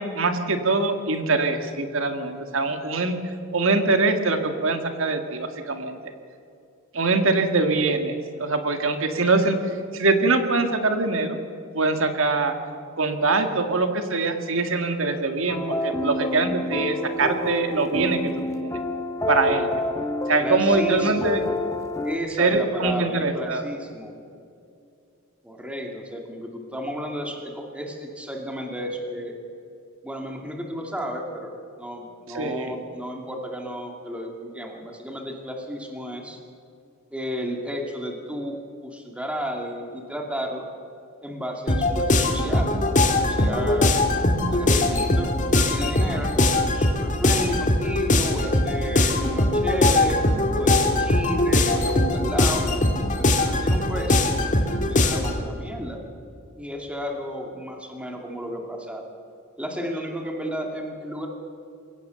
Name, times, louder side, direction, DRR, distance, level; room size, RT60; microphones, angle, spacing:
voice 1, 0.0-3.2 3.5-6.0 6.9-11.4 11.7-12.5 13.0-18.7 19.3-19.8 20.3-21.4 22.4-23.6 32.3-32.7, right 3 dB, 65° right, 7 dB, 2.0 m, -23 dB
sound 1, 15.5-22.2, left 1 dB, 15° left, 0.9 m, -28 dB
voice 2, 20.4-21.4 22.0-24.1 25.4-29.3 30.0-36.4 37.1-40.7 41.2-42.8 43.3-44.0 44.5-50.2 50.5-52.6 53.2-54.2 54.9-56.0 56.6-59.0 59.6-61.3, equal, 5° right, 1 dB, 2.4 m, -32 dB
sound 2, 41.7-55.4, left 2 dB, 35° left, 2.1 m, -21 dB
22.0 x 17.0 x 7.0 m, 2.5 s
head